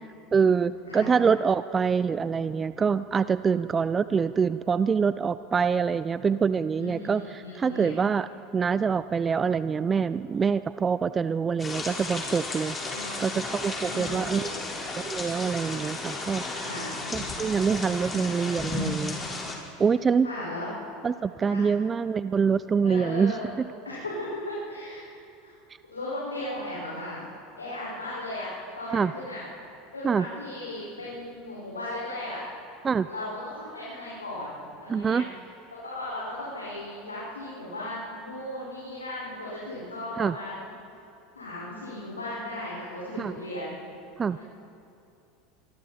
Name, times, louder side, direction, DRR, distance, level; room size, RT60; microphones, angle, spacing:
voice 1, 0.3-8.3 8.5-12.8 13.2-14.5 15.0-16.7 17.1-19.2 19.8-20.3 21.0-23.7 28.9-29.1 30.0-30.3 32.8-33.1 34.9-35.2 40.2-40.3 43.2-43.3 44.2-44.4, right 6 dB, 25° right, 15 dB, 0.5 m, -25 dB
voice 2, 6.7-8.0 12.8-13.4 13.8-14.6 16.5-16.9 20.2-20.7 21.5-21.6 22.8-23.5 23.8-25.1 25.4-25.5 25.9-27.2 27.6-28.5 28.7-29.4 29.9-32.4 33.0-35.2 35.8-40.7 41.3-43.7 44.2-44.4, left 1 dB, 90° left, -8 dB, 5.7 m, -36 dB
sound 1, 11.6-19.6, left 3 dB, 20° left, 4.6 m, -34 dB
26.0 x 23.5 x 4.4 m, 2.7 s
hypercardioid pair, 80°, 0 cm